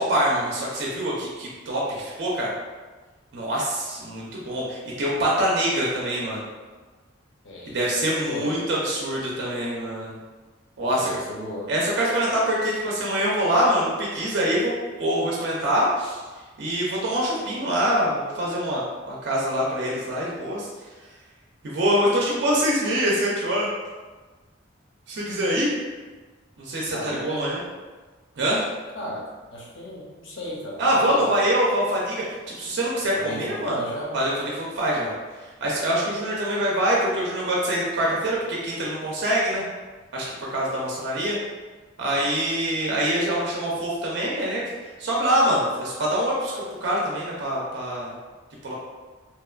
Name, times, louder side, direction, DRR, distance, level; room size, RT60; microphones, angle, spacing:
voice 1, 0.0-2.5 3.3-6.5 7.7-10.2 10.8-11.1 11.7-14.7 15.0-16.2 16.6-20.7 21.6-23.7 25.1-25.7 26.6-27.6 28.4-28.6 30.8-33.8 34.1-35.1 35.4-39.6 40.1-41.4 42.0-44.6 45.0-48.1 48.6-48.7, equal, 60° right, -4 dB, 0.5 m, -24 dB
voice 2, 7.4-8.6 10.8-11.7 26.9-27.5 28.9-29.2 29.5-31.3 33.2-34.1 42.1-42.3, equal, 70° left, -4 dB, 0.7 m, -35 dB
2.9 x 2.1 x 2.3 m, 1.3 s
head